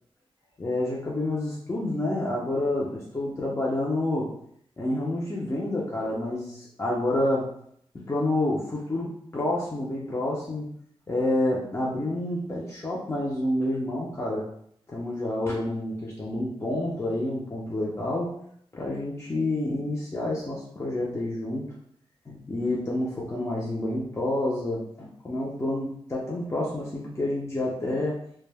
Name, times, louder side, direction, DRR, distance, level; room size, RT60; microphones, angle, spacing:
voice 1, 0.6-4.3 4.8-7.5 7.9-10.7 11.1-14.4 14.9-18.4 18.7-21.7 22.3-28.2, left 1 dB, 25° left, -5 dB, 0.5 m, -28 dB
2.2 x 2.0 x 3.3 m, 0.67 s
cardioid pair, 70°, 10 cm